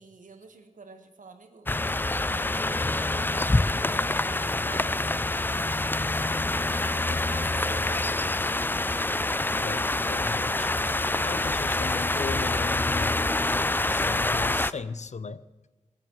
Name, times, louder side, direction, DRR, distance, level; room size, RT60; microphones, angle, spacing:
voice 1, 0.0-1.7 2.1-5.2 6.7-8.4, right 4 dB, 90° right, 1.5 m, -47 dB
sound 1, 1.7-14.7, left 2 dB, 15° left, 0.4 m, -26 dB
voice 2, 9.6-10.7 11.2-13.2 13.9-15.4, left 5 dB, 60° left, 0.6 m, -36 dB
18.0 x 8.4 x 8.1 m
wide cardioid pair, 80°, 13 cm